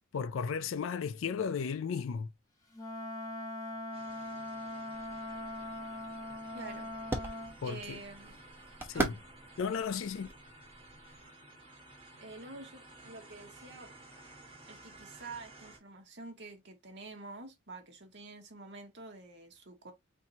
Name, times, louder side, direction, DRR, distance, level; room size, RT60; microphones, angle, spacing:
voice 1, 0.1-2.3 7.6-8.0 8.9-9.2 9.6-10.3, left 6 dB, 65° left, 0.4 m, -34 dB
Wind instrument woodwind instrument, 2.7-7.6, left 1 dB, 15° left, 0.9 m, -41 dB
sound 1, 3.9-15.8, right 2 dB, 25° right, 1.3 m, -54 dB
sound 2, 4.9-11.2, right 1 dB, 10° right, 0.8 m, -41 dB
voice 2, 6.5-6.9 7.6-8.4 8.9-9.1 12.2-13.9 14.7-19.9, right 3 dB, 55° right, 1.3 m, -48 dB
4.4 x 2.7 x 2.8 m
head